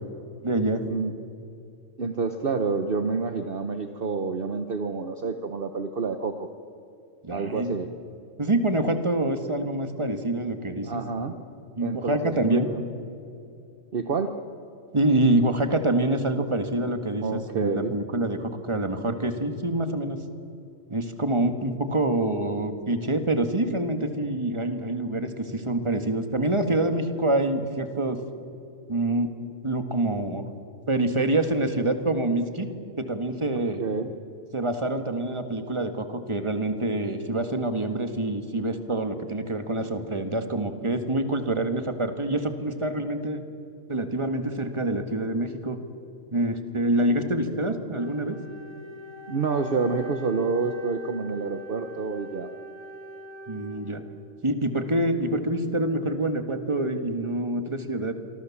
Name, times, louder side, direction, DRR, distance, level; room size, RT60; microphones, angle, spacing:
voice 1, 0.4-0.8 7.2-7.7 8.4-11.3 11.8-12.7 14.9-20.2 20.9-28.2 28.9-29.4 29.6-30.4 30.9-32.7 33.0-33.8 34.5-43.4 43.9-45.8 46.3-48.4 53.5-54.0 54.4-58.1, right 1 dB, 20° right, 7 dB, 1.7 m, -26 dB
voice 2, 2.0-6.5 7.3-7.9 10.8-11.3 11.8-12.8 13.9-14.3 17.2-17.9 33.8-34.1 47.2-47.6 49.3-52.5, right 4 dB, 45° right, 7 dB, 1.2 m, -28 dB
Wind instrument woodwind instrument, 47.9-54.3, equal, 75° right, 2.6 m, -43 dB
28.0 x 24.0 x 7.3 m, 2.7 s
omnidirectional pair, 1.4 m